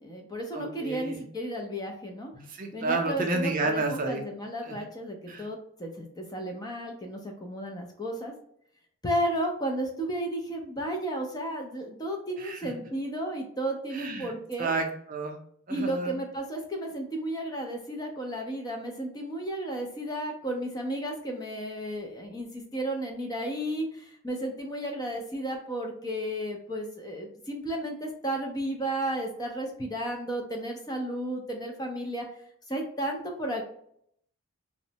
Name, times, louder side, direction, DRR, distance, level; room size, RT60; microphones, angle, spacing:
voice 1, 0.0-2.3 2.7-8.3 9.0-14.7 15.7-32.3 32.7-33.6, right 1 dB, 15° left, 2 dB, 0.4 m, -33 dB
voice 2, 0.5-1.2 2.3-4.2 4.6-4.8 5.3-5.5 12.4-12.7 13.9-14.3 14.6-15.4 15.7-16.2, right 3 dB, 40° right, 2 dB, 0.5 m, -31 dB
3.0 x 2.0 x 2.7 m, 0.68 s
head